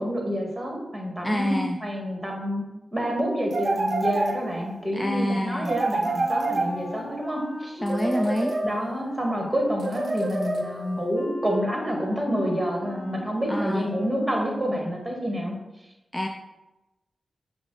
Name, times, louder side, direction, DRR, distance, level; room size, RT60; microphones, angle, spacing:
voice 1, 0.0-2.7 2.9-7.9 8.6-15.5, equal, 20° right, 0 dB, 1.2 m, -28 dB
voice 2, 1.2-1.8 4.9-5.7 7.8-8.6 13.5-13.9 16.1-16.3, equal, 10° left, 2 dB, 0.3 m, -26 dB
sound 1, 3.5-4.8 5.6-7.2 7.9-9.0 9.8-11.0, right 2 dB, 55° right, 0.5 m, -28 dB
Wind instrument woodwind instrument, 5.4-14.3, left 2 dB, 60° left, 0.6 m, -40 dB
5.7 x 2.0 x 3.8 m, 0.99 s
cardioid pair, 50°, 0 cm